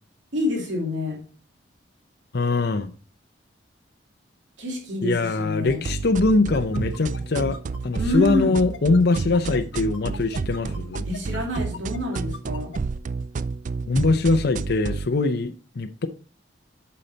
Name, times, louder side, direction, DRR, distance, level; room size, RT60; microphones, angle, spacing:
voice 1, 0.3-1.2 4.6-5.8 7.9-8.6 11.0-12.7, left 2 dB, 85° right, 2.4 m, -27 dB
voice 2, 2.3-2.9 5.0-7.6 7.8-11.1 13.9-16.1, left 3 dB, 60° left, 0.6 m, -22 dB
sound 1, 5.7-15.1, right 4 dB, 45° right, 0.4 m, -31 dB
sound 2, 6.5-12.8, left 5 dB, 80° left, 1.1 m, -40 dB
8.4 x 5.8 x 4.0 m
head